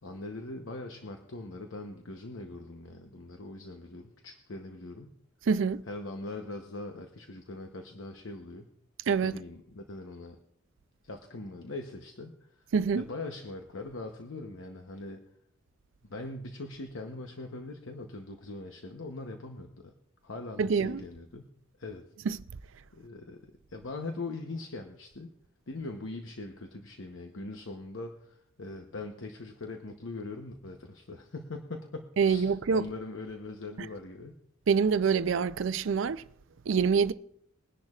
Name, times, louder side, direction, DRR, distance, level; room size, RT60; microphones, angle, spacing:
voice 1, 0.0-5.1 5.9-8.7 9.2-10.4 11.0-12.4 12.9-15.2 16.0-19.9 20.2-21.5 21.8-22.0 22.9-23.4 23.7-25.3 25.7-34.4, left 2 dB, 70° left, 0.9 m, -41 dB
voice 2, 5.5-5.8 9.1-9.4 12.7-13.0 20.6-21.0 22.3-22.4 32.2-32.9 34.7-36.2 36.7-37.1, right 6 dB, 70° right, 0.4 m, -26 dB
21.5 x 10.5 x 2.4 m
head